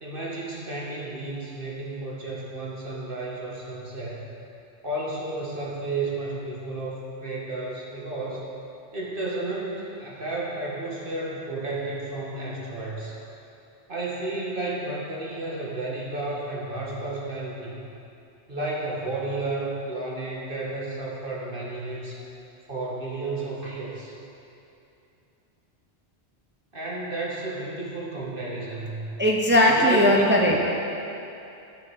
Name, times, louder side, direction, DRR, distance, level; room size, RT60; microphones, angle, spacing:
voice 1, 0.0-4.3 4.8-8.5 8.9-13.2 13.9-17.7 18.5-22.2 22.7-24.1 26.7-29.1 29.6-30.5, right 2 dB, 50° right, -5 dB, 2.2 m, -32 dB
voice 2, 29.2-30.7, equal, 10° right, -2 dB, 0.8 m, -19 dB
13.5 x 7.2 x 6.4 m, 2.7 s
omnidirectional pair, 1.2 m